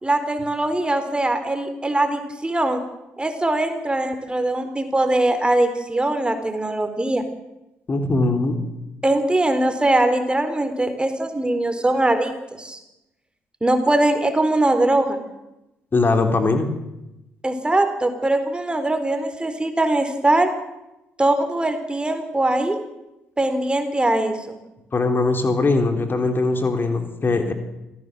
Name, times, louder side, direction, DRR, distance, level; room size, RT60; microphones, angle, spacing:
voice 1, 0.0-2.8 3.2-7.2 9.0-12.8 13.6-15.2 17.4-20.5 21.2-22.8 23.4-24.6, right 1 dB, 15° right, 8 dB, 4.2 m, -21 dB
voice 2, 7.9-8.6 15.9-16.7 24.9-27.5, left 3 dB, 35° left, 6 dB, 3.6 m, -20 dB
27.5 x 16.0 x 7.7 m, 0.95 s
hypercardioid pair, 45°, 6 cm